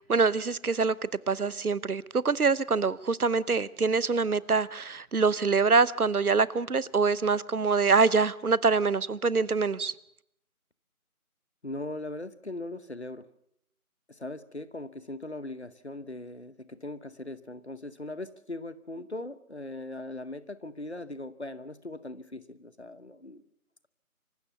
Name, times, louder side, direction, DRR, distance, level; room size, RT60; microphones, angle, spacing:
voice 1, 0.0-9.9, right 4 dB, 75° right, 20 dB, 0.9 m, -25 dB
voice 2, 11.6-13.3 14.1-23.4, left 2 dB, 50° left, 16 dB, 1.0 m, -39 dB
25.5 x 15.0 x 7.0 m, 0.77 s
figure-of-eight pair, 175°, 44 cm